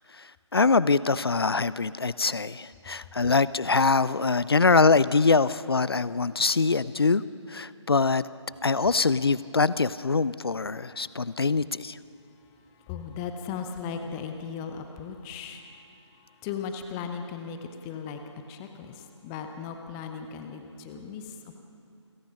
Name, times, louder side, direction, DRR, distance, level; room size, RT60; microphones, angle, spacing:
voice 1, 0.2-7.2 7.5-8.3 8.6-12.0, left 4 dB, 55° left, 18 dB, 0.6 m, -23 dB
voice 2, 12.4-21.6, left 6 dB, 5° left, 6 dB, 0.5 m, -38 dB
29.0 x 17.5 x 6.2 m, 2.5 s
figure-of-eight pair, 150°, 15 cm